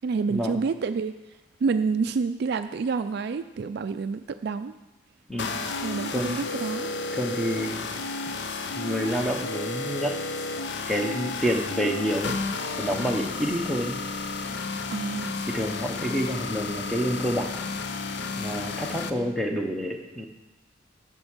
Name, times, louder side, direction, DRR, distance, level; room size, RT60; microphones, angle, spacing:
voice 1, 0.0-1.1 1.6-4.7 5.8-6.9 14.9-15.3, right 4 dB, 55° right, 10 dB, 0.3 m, -28 dB
sound 1, 5.4-19.1, left 3 dB, 55° left, 0.6 m, -32 dB
voice 2, 7.1-8.0 8.7-10.2 10.9-12.3 12.8-14.0 15.5-17.5 18.4-20.3, equal, ahead, 2 dB, 0.8 m, -28 dB
7.8 x 6.0 x 7.2 m, 1.1 s
head